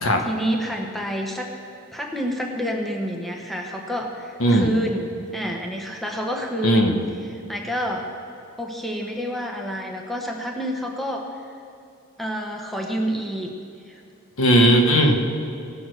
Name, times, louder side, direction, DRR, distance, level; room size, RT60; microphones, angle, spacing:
voice 1, 0.0-1.5 1.9-7.0 7.5-8.1 8.6-11.2 12.2-13.5 13.9-14.0, equal, ahead, 1 dB, 1.0 m, -28 dB
voice 2, 4.4-4.7 6.6-6.9 14.4-15.2, equal, 75° left, 3 dB, 1.3 m, -17 dB
17.5 x 7.1 x 6.3 m, 2.6 s
head